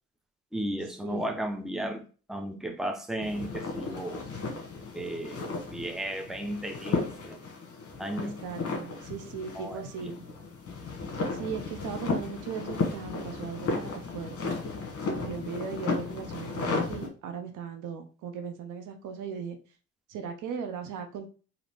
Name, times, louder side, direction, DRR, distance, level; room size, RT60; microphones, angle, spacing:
voice 1, 0.5-4.2 4.9-7.4 8.0-8.4 9.5-10.4, right 1 dB, ahead, 3 dB, 0.7 m, -35 dB
sound 1, 3.2-17.1, left 4 dB, 50° left, 1.2 m, -34 dB
voice 2, 8.2-10.2 11.3-14.6 15.0-19.6 20.1-21.3, right 7 dB, 80° right, 6 dB, 0.8 m, -38 dB
4.0 x 2.8 x 3.4 m, 0.37 s
cardioid pair, 90°, 30 cm